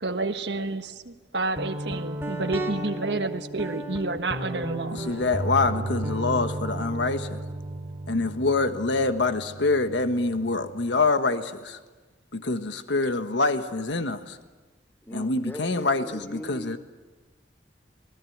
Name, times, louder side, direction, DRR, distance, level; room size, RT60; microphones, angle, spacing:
voice 1, 0.0-5.0, right 3 dB, 70° right, 1.4 m, -30 dB
Guitar, 1.6-11.0, right 1 dB, 15° right, 3.2 m, -34 dB
voice 2, 5.1-7.4 8.1-11.8 12.3-14.4 15.1-16.8, left 3 dB, 85° left, 1.4 m, -25 dB
voice 3, 15.0-16.8, left 1 dB, 10° left, 1.0 m, -39 dB
27.0 x 20.5 x 9.3 m
head